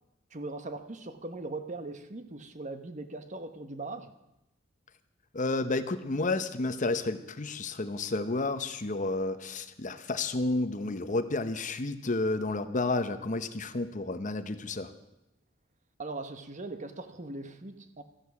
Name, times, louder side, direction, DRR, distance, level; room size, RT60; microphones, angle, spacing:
voice 1, 0.3-4.1 16.0-18.0, right 2 dB, 40° right, 9 dB, 1.1 m, -40 dB
voice 2, 5.3-14.9, left 2 dB, 40° left, 11 dB, 0.8 m, -31 dB
14.0 x 11.0 x 7.1 m, 0.91 s
head